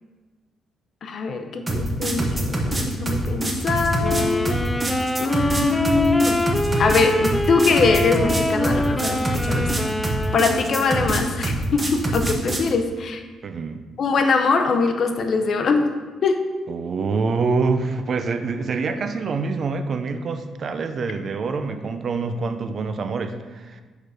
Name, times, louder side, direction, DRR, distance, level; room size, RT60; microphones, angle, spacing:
voice 1, 1.0-4.6 5.2-6.4 6.8-9.7 10.3-13.2 14.0-15.9 16.2-16.4, left 4 dB, 55° left, 6 dB, 0.6 m, -22 dB
sound 1, 1.7-12.7, right 1 dB, 25° right, 1.0 m, -25 dB
Wind instrument woodwind instrument, 4.0-11.2, left 1 dB, 15° left, 0.3 m, -25 dB
voice 2, 13.4-13.8 16.7-23.8, right 4 dB, 50° right, 8 dB, 0.4 m, -26 dB
4.8 x 4.6 x 4.8 m, 1.3 s
cardioid pair, 90°, 0 cm